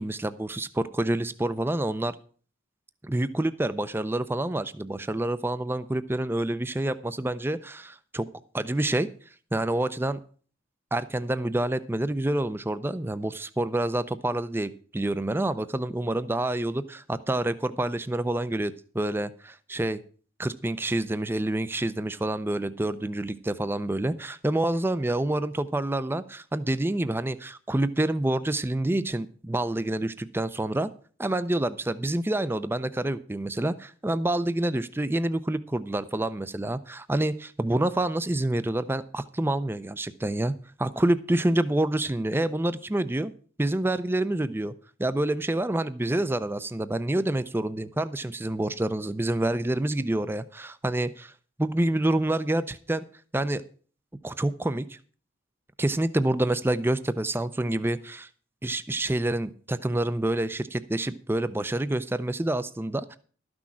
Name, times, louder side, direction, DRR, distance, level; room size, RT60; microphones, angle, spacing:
voice 1, 0.0-2.2 3.0-8.3 8.5-9.1 9.5-10.2 10.9-20.0 20.4-30.9 31.2-40.5 40.8-43.3 43.6-44.7 45.0-51.3 51.6-53.0 53.3-53.6 54.2-55.0 55.8-58.3 58.6-63.2, right 1 dB, 10° right, 14 dB, 0.4 m, -27 dB
12.5 x 6.2 x 7.3 m, 0.43 s
head